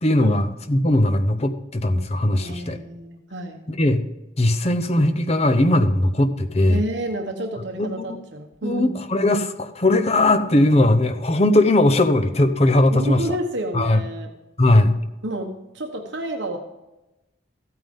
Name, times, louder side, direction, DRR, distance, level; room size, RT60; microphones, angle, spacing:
voice 1, 0.0-2.8 3.7-4.0 4.4-6.8 7.8-8.0 8.6-13.2 13.7-14.0 14.6-15.0, left 1 dB, 30° left, 8 dB, 0.8 m, -19 dB
voice 2, 2.4-3.6 6.7-9.0 12.9-14.3 15.2-16.6, right 1 dB, 60° right, 3 dB, 1.1 m, -30 dB
14.5 x 9.1 x 3.6 m, 0.99 s
head